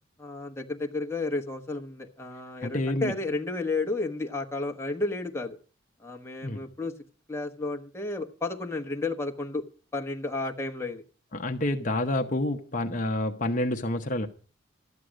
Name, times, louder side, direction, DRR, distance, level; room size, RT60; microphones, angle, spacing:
voice 1, 0.2-5.6 6.0-6.9 7.3-9.6 9.9-11.0, left 2 dB, 15° left, 2 dB, 1.2 m, -32 dB
voice 2, 2.6-3.1 6.4-6.6 11.3-14.3, left 1 dB, 40° left, 4 dB, 0.9 m, -28 dB
13.0 x 9.4 x 6.3 m, 0.38 s
head